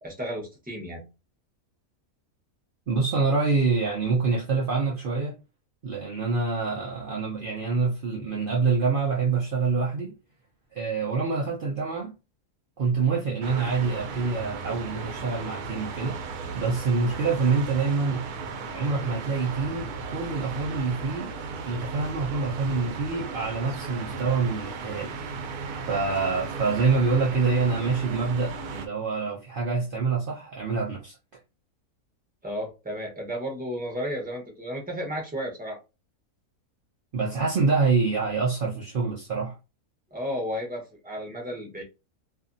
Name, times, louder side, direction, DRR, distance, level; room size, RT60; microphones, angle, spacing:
voice 1, 0.0-1.0 32.4-35.8 40.1-41.8, equal, 10° right, 0.7 m, -33 dB
voice 2, 2.9-5.3 5.8-10.1 10.7-12.1 12.8-16.2 16.5-18.2 18.7-21.3 21.7-25.1 25.9-31.2 37.1-39.6, right 4 dB, 65° right, 0.5 m, -26 dB
sound 1, 13.4-28.9, right 4 dB, 85° right, 1.1 m, -36 dB
2.6 x 2.5 x 2.5 m
omnidirectional pair, 1.6 m